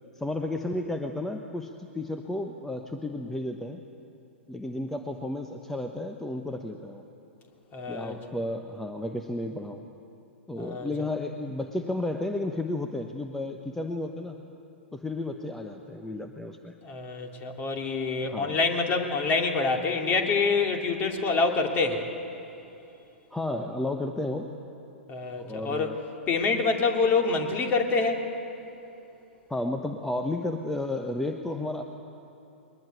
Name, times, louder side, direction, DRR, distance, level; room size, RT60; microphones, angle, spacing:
voice 1, 0.1-3.8 4.5-7.0 7.9-9.8 10.5-14.3 14.9-16.7 18.2-18.6 23.3-24.5 25.4-26.0 29.5-31.8, left 2 dB, 5° left, 5 dB, 1.1 m, -32 dB
voice 2, 7.7-8.1 10.6-10.9 16.8-22.0 25.1-26.0 26.3-28.2, left 4 dB, 30° left, 3 dB, 2.8 m, -26 dB
22.0 x 20.0 x 9.4 m, 2.8 s
figure-of-eight pair, 105°, 7 cm